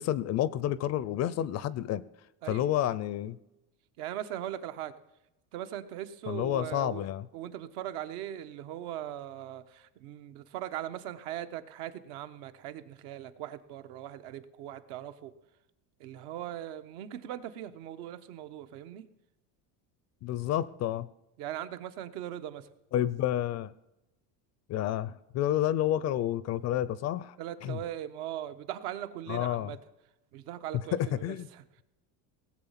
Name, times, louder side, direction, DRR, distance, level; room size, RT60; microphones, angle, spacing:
voice 1, 0.0-2.0 2.5-3.4 6.3-7.3 20.2-21.1 22.9-23.7 24.7-27.4 27.6-27.8 29.3-29.7 30.9-31.5, left 12 dB, 40° left, 0.4 m, -30 dB
voice 2, 2.4-2.7 4.0-4.9 5.5-7.0 7.3-15.3 16.0-19.1 21.4-22.7 27.4-29.8 30.3-31.6, right 12 dB, 75° right, 1.2 m, -40 dB
18.0 x 7.5 x 5.8 m
cardioid pair, 140°, 45 cm